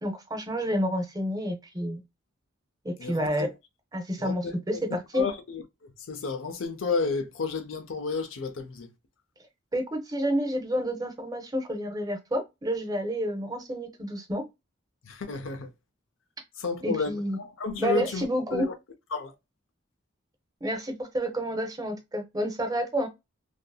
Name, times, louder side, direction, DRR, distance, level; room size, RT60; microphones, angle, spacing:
voice 1, 0.0-2.0 2.8-3.5 3.9-4.8 5.1-5.3 9.7-14.4 16.8-17.4 17.8-18.7 20.6-23.1, equal, 20° right, 0.6 m, -29 dB
voice 2, 3.0-3.5 4.2-4.8 5.1-8.9 15.0-15.7 16.6-18.3 18.5-18.7 19.1-19.3, left 4 dB, 70° left, 0.6 m, -32 dB
2.7 x 2.6 x 2.2 m
head